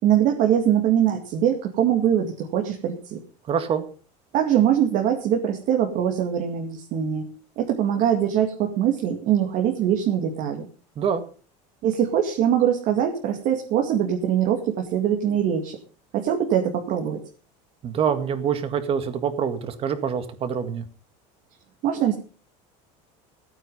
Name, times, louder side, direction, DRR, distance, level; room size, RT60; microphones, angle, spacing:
voice 1, 0.0-3.2 4.3-7.3 7.6-10.7 11.8-15.8 16.1-17.2 21.8-22.1, right 9 dB, 55° right, 3 dB, 2.3 m, -22 dB
voice 2, 3.5-3.8 11.0-11.2 17.8-20.9, right 7 dB, 35° right, 10 dB, 2.0 m, -25 dB
15.5 x 9.0 x 5.5 m, 0.39 s
cardioid pair, 145°, 16 cm